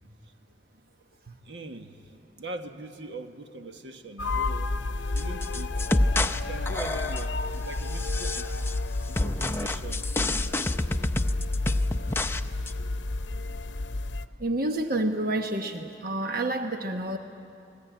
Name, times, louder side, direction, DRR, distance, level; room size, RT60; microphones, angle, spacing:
voice 1, 1.3-2.0 2.4-4.7 5.1-5.9 6.3-8.5 9.1-10.0, right 2 dB, 75° right, 6 dB, 1.3 m, -41 dB
sound 1, 4.2-14.3, left 2 dB, 85° left, 0.7 m, -31 dB
sound 2, 5.2-6.4 6.7-7.4 7.9-8.8 9.2-12.4 12.7-12.8, left 2 dB, 15° left, 0.6 m, -28 dB
voice 2, 14.4-17.2, right 1 dB, 55° right, 5 dB, 1.1 m, -28 dB
29.0 x 20.5 x 9.2 m, 2.6 s
head